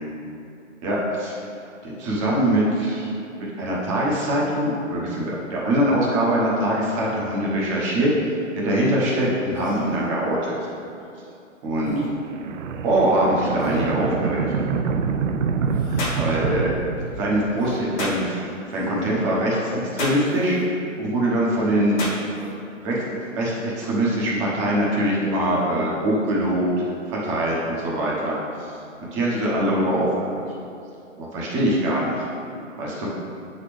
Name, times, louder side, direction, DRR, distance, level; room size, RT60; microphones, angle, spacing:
voice 1, 0.8-1.4 1.8-8.1 8.6-10.5 11.6-11.9 12.8-14.5 16.2-16.7 17.1-20.6 21.0-22.0 22.8-26.7 27.1-28.7 29.1-30.1 30.3-30.4 31.2-32.1 32.8-33.1, right 1 dB, 25° right, -5 dB, 1.1 m, -23 dB
Human voice, 9.5-10.1 11.8-12.1 13.6-14.0 15.6-16.2 17.6-17.8 18.7-19.0 20.1-20.7 22.3-22.6, right 1 dB, 5° left, 0.8 m, -35 dB
sound 1, 11.8-17.7, right 5 dB, 75° right, 0.5 m, -26 dB
sound 2, 16.0-16.3 18.0-18.2 20.0-20.3 22.0-22.2, left 2 dB, 35° left, 1.3 m, -28 dB
7.4 x 4.2 x 3.3 m, 2.6 s
hypercardioid pair, 150°, 39 cm